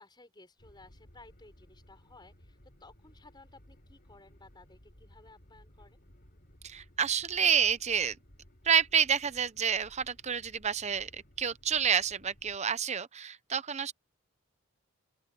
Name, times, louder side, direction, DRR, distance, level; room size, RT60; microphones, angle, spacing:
voice 1, 0.0-6.0, left 3 dB, 20° left, 5.4 m, -57 dB
sound 1, 0.6-12.6, equal, 45° left, 4.0 m, -59 dB
voice 2, 6.6-8.2 8.6-13.9, right 7 dB, 30° right, 0.7 m, -29 dB
open air
head